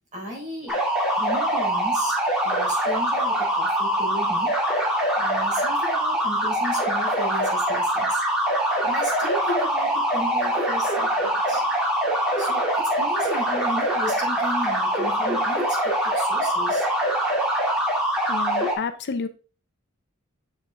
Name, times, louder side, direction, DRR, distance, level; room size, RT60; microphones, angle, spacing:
voice 1, 0.1-0.8 1.1-4.6 5.2-8.2 8.8-11.8 12.4-16.9, equal, 35° right, -2 dB, 3.8 m, -35 dB
sound 1, 0.7-18.7, right 1 dB, 5° right, 2.3 m, -23 dB
voice 2, 18.3-19.3, left 4 dB, 50° left, 10 dB, 0.5 m, -30 dB
7.4 x 5.3 x 3.4 m, 0.35 s
head